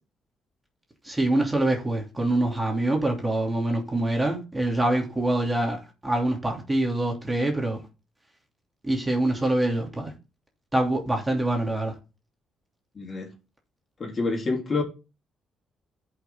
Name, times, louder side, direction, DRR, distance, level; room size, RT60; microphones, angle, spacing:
voice 1, 1.0-7.8 8.8-10.1 10.7-11.9, right 1 dB, 15° right, 2.9 m, -25 dB
voice 2, 13.0-13.3 14.0-14.8, left 3 dB, 35° left, 3.7 m, -27 dB
14.5 x 5.9 x 3.8 m
cardioid pair, 90°, 0 cm